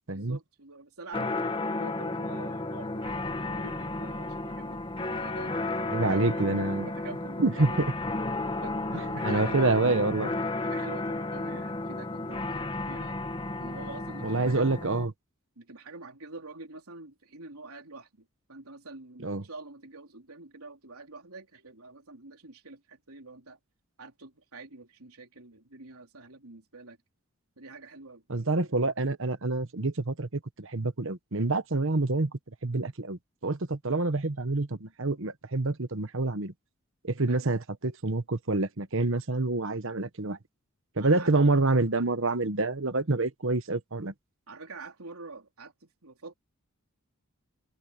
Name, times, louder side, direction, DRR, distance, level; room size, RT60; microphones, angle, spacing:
voice 1, 0.1-6.5 6.8-7.8 8.6-10.1 10.6-13.2 13.6-14.8 15.6-23.6 24.0-27.0 27.6-28.2 37.3-37.4 41.0-41.3 44.5-46.3, right 3 dB, 80° right, 3.7 m, -46 dB
sound 1, 1.1-15.1, left 2 dB, 25° left, 1.4 m, -33 dB
voice 2, 5.9-6.9 7.4-7.7 8.9-10.3 14.2-15.1 19.2-19.4 28.3-32.3 32.6-36.5 37.0-40.4 41.0-44.1, right 2 dB, 60° right, 1.2 m, -27 dB
head